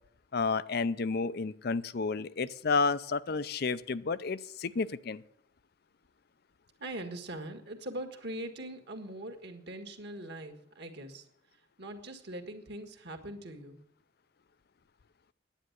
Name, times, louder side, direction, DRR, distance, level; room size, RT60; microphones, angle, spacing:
voice 1, 0.3-5.2, left 4 dB, 50° left, 16 dB, 0.5 m, -31 dB
voice 2, 6.8-13.8, right 1 dB, 55° right, 6 dB, 1.7 m, -42 dB
10.0 x 9.3 x 8.0 m, 0.71 s
head